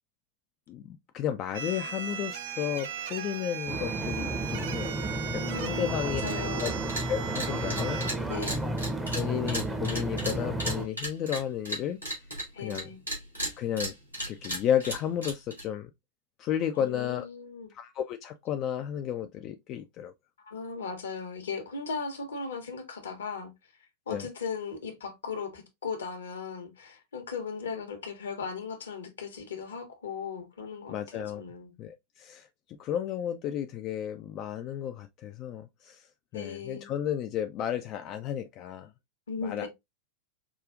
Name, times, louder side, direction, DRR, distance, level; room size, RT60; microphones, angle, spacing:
voice 1, 0.7-4.9 5.3-6.2 6.6-6.7 7.1-8.3 9.1-12.0 12.6-12.9 13.6-13.9 14.3-15.9 16.4-17.3 17.7-20.1 24.1-24.3 30.9-31.4 31.8-32.5 32.8-36.1 36.3-38.9 39.4-39.7, left 10 dB, 35° left, 0.3 m, -33 dB
sound 1, 1.5-8.2, right 8 dB, 55° right, 0.5 m, -37 dB
sound 2, 3.7-10.9, right 1 dB, 10° right, 0.6 m, -32 dB
voice 2, 5.4-6.8 8.3-8.6 12.5-13.0 16.8-17.7 20.4-23.5 24.1-31.7 36.3-36.9 39.3-39.7, left 5 dB, 65° left, 0.9 m, -37 dB
sound 3, 6.2-6.3 6.6-7.1 7.3-12.8 13.1-15.6, right 1 dB, 90° right, 2.1 m, -34 dB
4.9 x 2.4 x 2.4 m
figure-of-eight pair, 90°, 0 cm